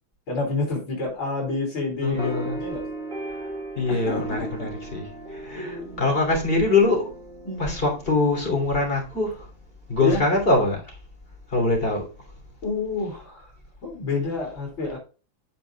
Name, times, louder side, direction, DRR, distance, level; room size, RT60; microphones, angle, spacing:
voice 1, 0.3-2.8 3.9-4.7 5.5-6.1 7.4-7.8 10.0-10.2 12.6-13.5 13.8-15.0, left 3 dB, 85° left, 4.4 m, -29 dB
voice 2, 2.0-2.6 3.4-3.5 3.8-7.1 7.6-9.5 9.9-11.0 11.5-12.1, left 3 dB, 30° left, 3.2 m, -23 dB
sound 1, 2.2-9.1, right 2 dB, 25° right, 2.4 m, -37 dB
15.0 x 5.2 x 2.3 m
omnidirectional pair, 2.1 m